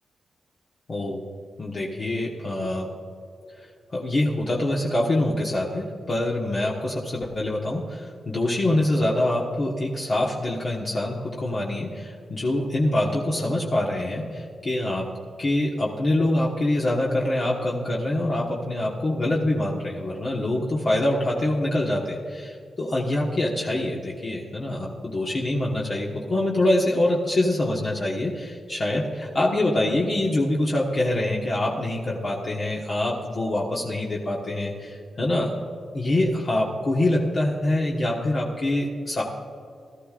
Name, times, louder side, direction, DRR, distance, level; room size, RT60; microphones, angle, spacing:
voice 1, 0.9-1.2 1.6-2.9 3.9-15.1 15.4-35.5 35.9-39.2, left 1 dB, 40° left, -4 dB, 1.4 m, -25 dB
18.0 x 13.5 x 2.5 m, 2.4 s
wide cardioid pair, 120°, 0 cm